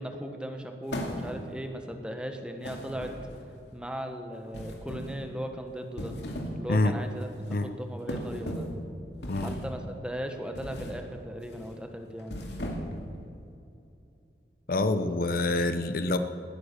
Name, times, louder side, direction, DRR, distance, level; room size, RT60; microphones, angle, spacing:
voice 1, 0.0-3.1 3.7-6.2 6.6-8.7 9.4-12.4, equal, 5° right, 5 dB, 1.2 m, -37 dB
sound 1, 0.9-1.6 2.6-3.5 4.5-5.2 5.8-6.6 7.0-7.2 8.1-8.8 9.2-9.8 10.5-11.0 11.4-11.7 12.2-13.1, equal, 75° left, 2.4 m, -36 dB
voice 2, 14.7-16.2, left 2 dB, 55° left, 9 dB, 0.7 m, -26 dB
19.0 x 9.5 x 6.8 m, 2.7 s
head